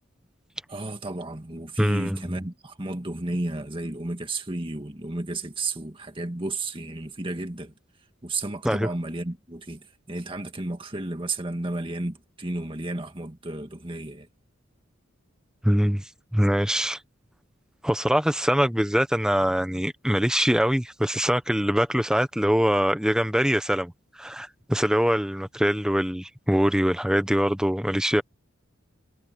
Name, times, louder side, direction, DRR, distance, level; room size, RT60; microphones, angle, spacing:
voice 1, 0.7-7.7 8.2-14.3, right 2 dB, 25° right, 2.0 m, -32 dB
voice 2, 1.8-2.2 8.6-8.9 15.6-16.0 16.3-17.0 17.8-23.9 24.2-28.2, equal, 5° right, 1.1 m, -23 dB
head